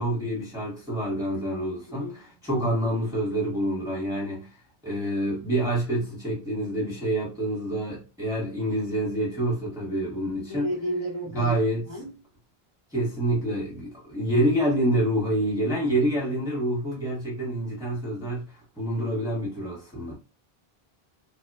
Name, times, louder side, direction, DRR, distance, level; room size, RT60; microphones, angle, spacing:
voice 1, 0.0-4.6 4.8-10.7 11.3-11.8 12.9-20.1, right 1 dB, 5° right, 0.8 m, -27 dB
voice 2, 10.5-11.6 11.9-12.2, right 1 dB, 25° left, 0.8 m, -32 dB
2.8 x 2.1 x 2.2 m
omnidirectional pair, 1.1 m